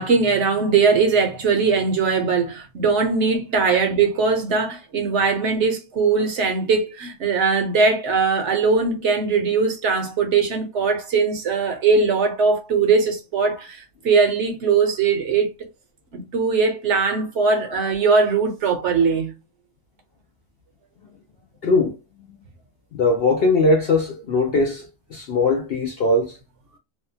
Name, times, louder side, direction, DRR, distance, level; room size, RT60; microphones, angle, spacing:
voice 1, 0.0-15.5 16.1-19.3, right 4 dB, 65° right, 0.9 m, -20 dB
voice 2, 21.6-22.0 22.9-26.4, left 2 dB, 65° left, 0.6 m, -20 dB
2.7 x 2.1 x 2.5 m
omnidirectional pair, 1.5 m